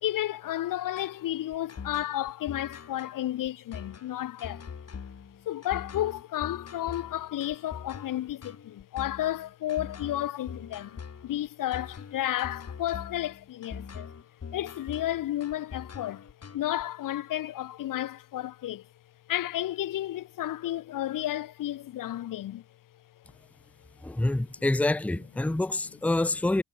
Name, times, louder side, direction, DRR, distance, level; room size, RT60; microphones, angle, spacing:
voice 1, 0.0-4.7 5.4-14.2 14.5-16.3 16.5-18.9 19.3-22.6, left 13 dB, 75° left, 1.4 m, -32 dB
sound 1, 1.0-16.8, left 6 dB, 50° left, 4.5 m, -43 dB
voice 2, 24.0-26.6, left 2 dB, 5° left, 0.6 m, -27 dB
supercardioid pair, 55°, 32 cm